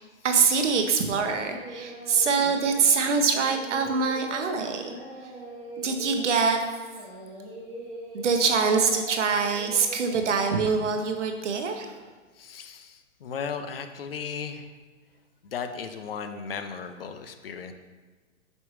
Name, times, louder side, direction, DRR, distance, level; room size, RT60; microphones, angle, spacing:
voice 1, 0.2-5.0 5.8-6.6 8.1-12.0, right 5 dB, 70° right, 5 dB, 1.0 m, -24 dB
Singing, 1.1-10.5, right 1 dB, 15° right, 1.2 m, -41 dB
voice 2, 12.4-14.6 15.5-17.7, left 6 dB, 50° left, 8 dB, 0.5 m, -36 dB
6.0 x 5.3 x 3.1 m, 1.4 s
hypercardioid pair, 165°, 38 cm